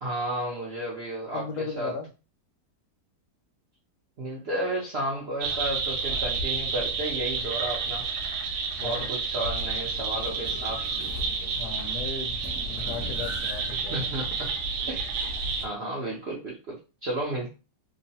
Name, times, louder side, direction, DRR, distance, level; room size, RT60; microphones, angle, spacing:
voice 1, 0.0-1.9 4.2-8.1 8.8-10.9 13.9-14.5 14.9-15.1 15.6-17.5, right 1 dB, 65° right, -4 dB, 0.6 m, -32 dB
voice 2, 1.3-2.1 8.8-9.1 11.6-12.4 12.7-14.1, left 5 dB, 80° left, 5 dB, 1.2 m, -36 dB
sound 1, 5.4-15.7, right 4 dB, 90° right, 1.2 m, -30 dB
sound 2, 9.6-15.7, equal, 30° left, 0.4 m, -43 dB
2.9 x 2.0 x 2.7 m, 0.32 s
omnidirectional pair, 1.8 m